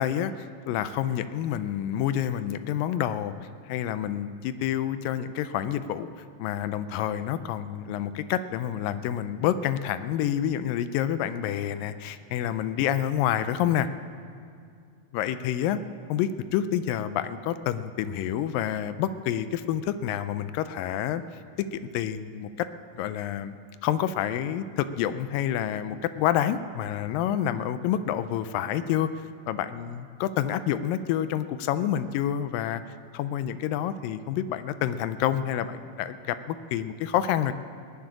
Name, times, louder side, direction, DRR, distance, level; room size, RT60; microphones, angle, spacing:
voice 1, 0.0-3.3 3.7-13.9 15.1-15.8 16.1-21.2 21.6-22.7 23.0-23.6 23.8-32.8 33.1-37.5, left 10 dB, 80° left, 12 dB, 2.2 m, -28 dB
18.5 x 7.6 x 9.9 m, 2.3 s
omnidirectional pair, 4.1 m